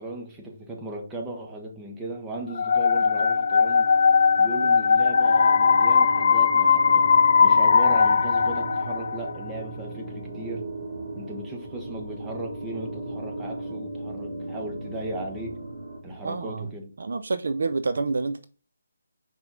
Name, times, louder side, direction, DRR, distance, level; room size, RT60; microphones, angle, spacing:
voice 1, 0.0-3.9 4.4-7.1 7.4-10.7 11.1-15.6 16.0-16.9, right 1 dB, 10° right, 1.3 m, -37 dB
sound 1, 2.6-9.4, left 5 dB, 55° left, 0.3 m, -19 dB
sound 2, 2.9-16.5, right 2 dB, 45° right, 2.1 m, -37 dB
voice 2, 16.2-16.7 17.0-18.5, right 3 dB, 65° right, 0.5 m, -28 dB
5.6 x 4.8 x 3.7 m
figure-of-eight pair, 155°, 0 cm